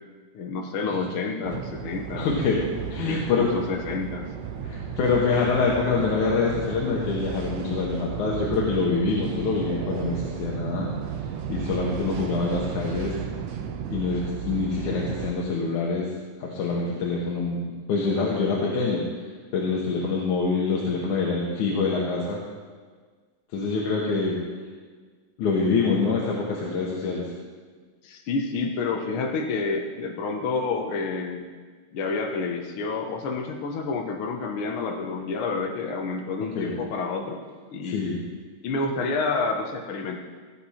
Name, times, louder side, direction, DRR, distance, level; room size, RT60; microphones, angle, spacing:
voice 1, 0.3-2.3 3.1-4.3 28.0-31.6 31.9-37.4 37.7-38.1 38.6-40.2, left 4 dB, 65° left, 2 dB, 1.4 m, -29 dB
sound 1, 1.4-15.3, right 7 dB, 70° right, 1.8 m, -34 dB
voice 2, 2.2-2.6 2.9-3.5 4.6-10.9 11.5-13.2 13.9-16.1 16.4-19.0 19.5-22.4 23.5-24.4 25.4-27.2 36.6-36.7 37.9-38.2, left 4 dB, 85° left, -3 dB, 2.8 m, -25 dB
16.5 x 8.8 x 4.3 m, 1.5 s
omnidirectional pair, 3.4 m